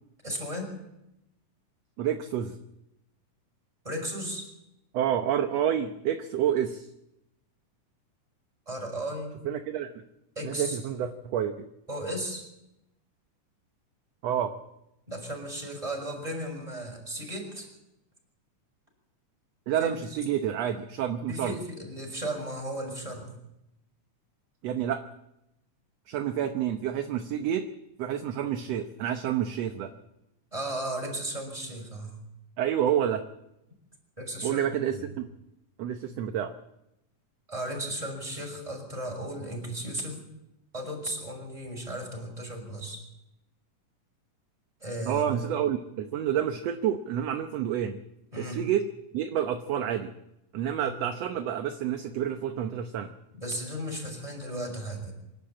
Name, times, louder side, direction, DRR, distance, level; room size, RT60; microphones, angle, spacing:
voice 1, 0.2-0.7 3.8-4.5 8.7-9.4 10.4-10.8 11.9-12.5 15.1-17.7 19.8-20.2 21.3-23.3 30.5-32.2 34.2-35.1 37.5-40.2 40.7-43.0 44.8-45.5 48.3-48.6 50.8-50.9 53.3-55.1, right 1 dB, 10° right, 1 dB, 5.8 m, -35 dB
voice 2, 2.0-2.6 4.9-6.9 9.5-9.9 10.4-11.5 14.2-14.5 19.7-21.6 24.6-25.0 26.1-27.7 28.0-29.9 32.6-33.2 34.4-35.3 35.8-36.5 45.1-48.0 48.4-48.9 49.1-50.1 50.5-53.1, right 9 dB, 70° right, 7 dB, 1.8 m, -29 dB
25.5 x 12.0 x 8.7 m, 0.88 s
omnidirectional pair, 3.6 m